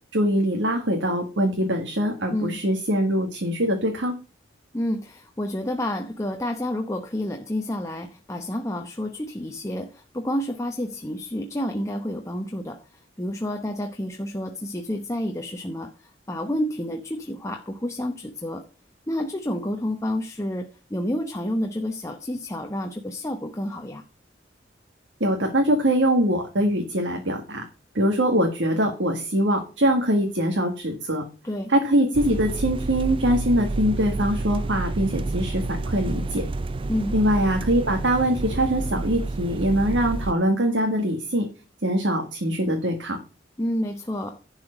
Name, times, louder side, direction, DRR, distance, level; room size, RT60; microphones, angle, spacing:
voice 1, 0.1-4.1 25.2-27.6 28.0-31.2 31.7-36.5 37.1-41.5 41.8-43.2, right 1 dB, 75° right, 1.8 m, -23 dB
voice 2, 4.7-18.7 19.1-24.0 31.4-31.7 36.9-37.2 43.6-44.4, left 1 dB, 15° left, 0.8 m, -29 dB
sound 1, 32.1-40.3, right 2 dB, 30° right, 0.4 m, -29 dB
11.0 x 4.9 x 6.5 m
head